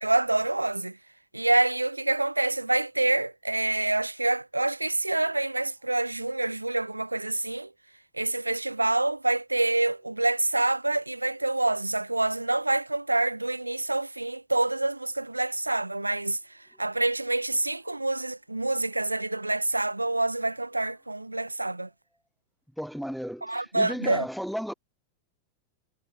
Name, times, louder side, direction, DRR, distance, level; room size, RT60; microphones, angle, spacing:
voice 1, 0.0-1.0 1.3-7.7 8.1-16.4 16.8-21.9 23.4-24.3, right 2 dB, 85° right, 1.1 m, -27 dB
voice 2, 22.8-24.7, equal, ahead, 3.9 m, -34 dB
figure-of-eight pair, 90°, 0 cm